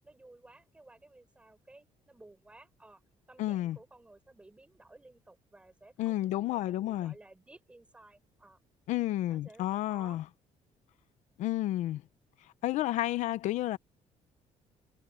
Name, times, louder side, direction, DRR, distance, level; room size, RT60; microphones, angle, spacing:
voice 1, 0.0-3.0 3.3-8.6 9.3-10.2, right 2 dB, 10° right, 6.1 m, -56 dB
voice 2, 3.4-3.8 6.0-7.1 8.9-10.2 11.4-12.0 12.6-13.8, left 14 dB, 75° left, 0.6 m, -31 dB
cardioid pair, 175°, 13 cm